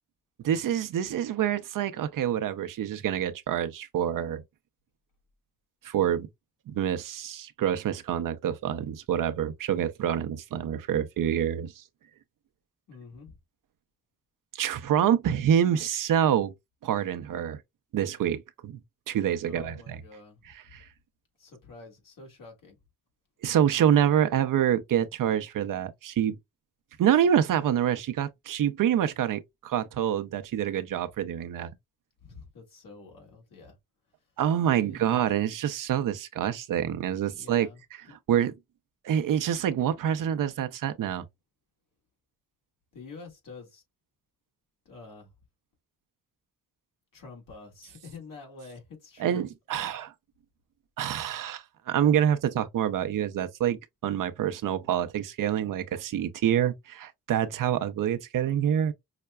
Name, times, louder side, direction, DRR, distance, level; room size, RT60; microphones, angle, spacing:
voice 1, 0.4-4.4 5.8-6.3 6.7-11.8 14.5-16.5 16.8-17.6 17.9-18.8 19.1-20.0 20.5-20.8 23.4-26.3 27.0-31.7 34.4-37.7 38.1-38.5 39.0-41.2 49.2-50.1 51.0-58.9, right 9 dB, 65° right, 0.6 m, -26 dB
voice 2, 12.9-13.4 19.5-20.5 21.4-22.8 32.2-33.8 34.8-35.1 37.3-37.8 42.9-43.8 44.9-45.3 47.1-49.5 49.7-50.0, left 4 dB, 70° left, 1.8 m, -47 dB
5.7 x 2.1 x 2.2 m
supercardioid pair, 55°, 34 cm